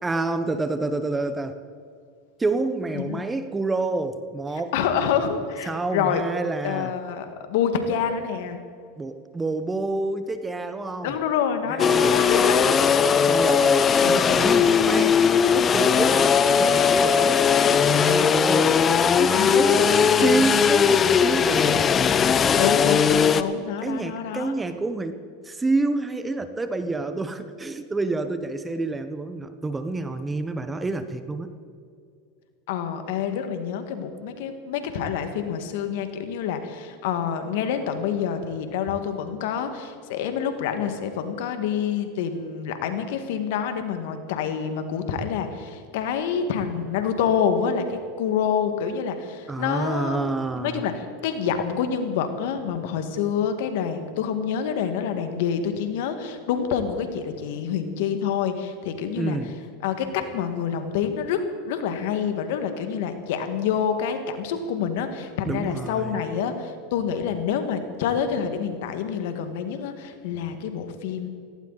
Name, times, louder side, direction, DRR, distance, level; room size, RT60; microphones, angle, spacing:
voice 1, 0.0-1.6 2.4-4.7 5.7-6.9 9.0-11.1 11.7-12.2 13.2-15.2 15.5-17.4 17.9-18.8 19.2-21.9 23.8-31.5 49.5-50.9 59.1-59.6 65.5-66.2, right 3 dB, 15° right, 10 dB, 1.2 m, -28 dB
voice 2, 4.7-6.2 6.6-8.6 11.0-12.8 14.0-14.7 19.3-20.4 22.6-24.5 32.7-50.3 50.6-59.4 59.8-61.4 61.7-71.3, left 7 dB, 70° left, 7 dB, 1.9 m, -27 dB
sound 1, 11.8-23.4, left 6 dB, 30° left, 0.8 m, -19 dB
17.5 x 17.0 x 4.2 m, 2.3 s
hypercardioid pair, 105°, 0 cm